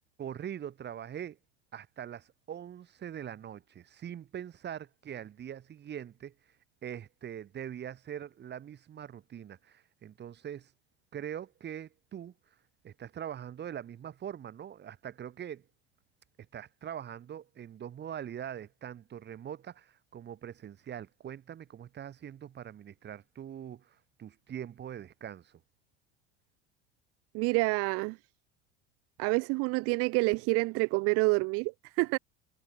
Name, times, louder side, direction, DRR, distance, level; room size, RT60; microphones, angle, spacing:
voice 1, 0.2-1.4 1.7-6.3 6.8-10.7 11.1-12.3 12.8-15.6 16.5-25.6, right 9 dB, 35° right, 4.2 m, -42 dB
voice 2, 27.3-28.2 29.2-32.2, right 28 dB, 55° right, 0.8 m, -28 dB
hypercardioid pair, 80°, 29 cm